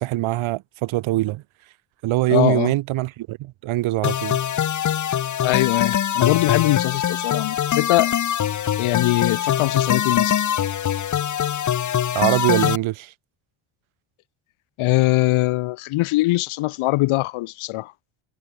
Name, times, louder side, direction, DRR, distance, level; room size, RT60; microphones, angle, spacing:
voice 1, 0.0-1.4 2.0-4.4 12.1-13.1, right 17 dB, 70° right, 4.0 m, -23 dB
voice 2, 2.3-2.7 5.4-8.1 8.8-10.3 14.8-17.9, left 19 dB, 75° left, 3.0 m, -21 dB
sound 1, 4.0-12.8, left 9 dB, 35° left, 1.3 m, -23 dB
cardioid pair, 110°, 50 cm